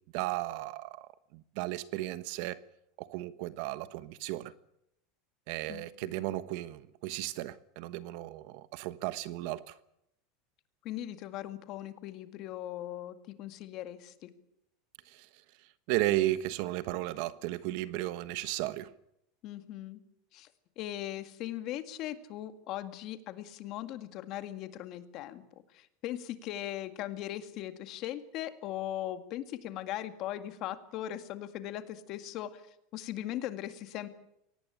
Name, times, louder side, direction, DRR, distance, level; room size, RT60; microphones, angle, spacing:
voice 1, 0.1-2.6 3.0-4.5 5.5-9.7 15.1-15.3 15.9-18.9, right 16 dB, 55° right, 1.2 m, -34 dB
voice 2, 5.7-6.2 10.8-14.3 19.4-20.0 20.3-20.5 20.8-25.4 25.7-32.6 32.9-34.1, left 13 dB, 40° left, 2.0 m, -39 dB
23.5 x 18.5 x 8.5 m
supercardioid pair, 165°, 0 cm